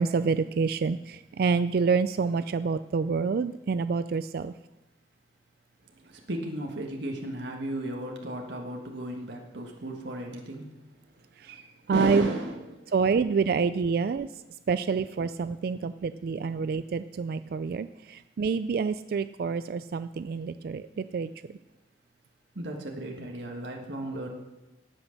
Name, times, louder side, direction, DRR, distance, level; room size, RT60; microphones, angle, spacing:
voice 1, 0.0-4.5 11.4-11.5 11.9-12.3 12.9-14.3 14.7-21.3, right 5 dB, 55° right, 13 dB, 0.3 m, -27 dB
voice 2, 5.9-10.7 11.5-13.1 22.6-24.3, right 1 dB, 80° right, 1 dB, 1.6 m, -35 dB
17.5 x 6.1 x 6.5 m, 1.0 s
head